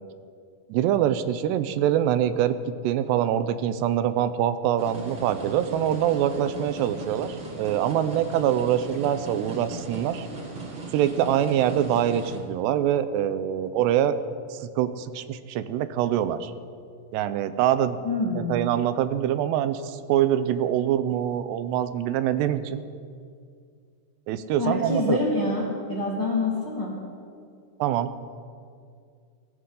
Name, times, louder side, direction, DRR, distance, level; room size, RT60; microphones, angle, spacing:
voice 1, 0.7-10.3 10.9-14.2 14.5-16.5 17.1-18.0 18.4-22.8 24.3-25.2 27.8-28.1, right 10 dB, 85° right, 12 dB, 2.8 m, -24 dB
sound 1, 4.8-12.4, right 3 dB, 40° right, 2.2 m, -38 dB
voice 2, 18.0-18.5 24.6-27.0, left 2 dB, 55° left, -4 dB, 1.2 m, -26 dB
19.5 x 16.5 x 3.8 m, 2.2 s
omnidirectional pair, 4.8 m